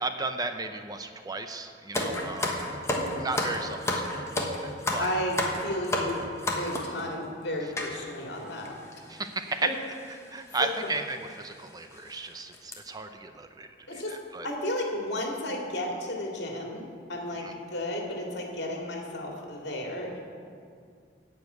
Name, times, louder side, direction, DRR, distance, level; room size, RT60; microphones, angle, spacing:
voice 1, 0.0-2.6 3.2-5.1 9.1-9.7 10.3-14.5 17.4-17.5, right 3 dB, 20° right, 7 dB, 0.5 m, -34 dB
sound 1, 1.9-7.0 7.8-7.9 8.7-8.8 8.9-9.1 10.1-10.3 10.8-10.9 11.4-11.5 11.9-12.2 12.5-12.7, left 1 dB, 15° left, 1.3 m, -30 dB
voice 2, 5.0-8.7 10.6-10.7 13.9-14.1 14.4-20.2, left 1 dB, 65° left, 0 dB, 2.3 m, -33 dB
14.5 x 5.1 x 9.3 m, 2.2 s
head